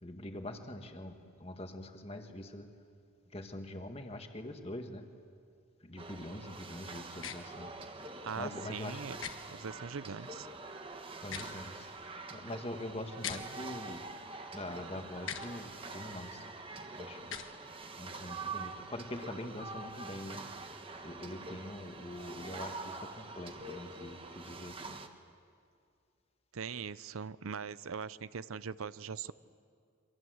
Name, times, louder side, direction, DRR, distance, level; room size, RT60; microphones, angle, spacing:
voice 1, 0.0-2.7 3.3-5.1 5.8-7.8 8.4-9.1 11.2-12.0 12.3-14.1 14.5-16.4 17.0-17.4 18.0-20.5 21.0-25.0, left 1 dB, 30° left, 5 dB, 1.8 m, -44 dB
sound 1, 6.0-25.1, right 3 dB, 25° right, 1.3 m, -45 dB
sound 2, 7.2-7.4 9.2-9.3 11.2-11.5 13.2-13.4 15.2-15.5 17.2-17.5, left 8 dB, 70° left, 1.4 m, -40 dB
voice 2, 8.2-9.2 9.5-10.5 26.5-29.3, right 6 dB, 90° right, 17 dB, 0.6 m, -41 dB
29.0 x 24.5 x 8.0 m, 2.3 s
head